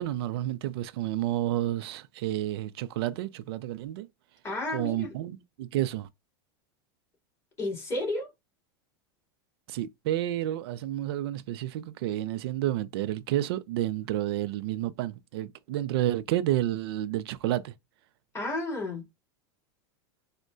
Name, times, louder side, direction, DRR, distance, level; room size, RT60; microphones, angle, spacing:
voice 1, 0.0-4.1 4.7-6.1 9.7-17.7, right 13 dB, 70° right, 0.4 m, -30 dB
voice 2, 4.4-5.1 7.6-8.3 18.3-19.0, left 2 dB, 20° left, 2.3 m, -32 dB
4.4 x 2.1 x 2.5 m
supercardioid pair, 130°, 13 cm